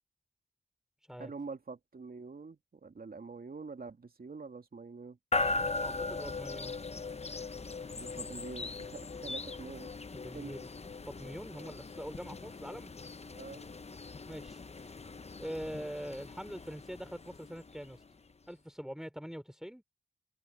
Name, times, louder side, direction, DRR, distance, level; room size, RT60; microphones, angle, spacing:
voice 1, 1.2-5.2 8.0-9.9 10.3-10.6 13.3-13.7, right 4 dB, 55° right, 2.8 m, -45 dB
sound 1, 5.3-18.3, left 3 dB, 35° left, 0.9 m, -39 dB
voice 2, 5.8-6.7 10.1-10.7 11.1-12.9 14.3-14.6 15.4-18.0 18.5-19.8, equal, 5° right, 3.8 m, -43 dB
cardioid pair, 40°, 18 cm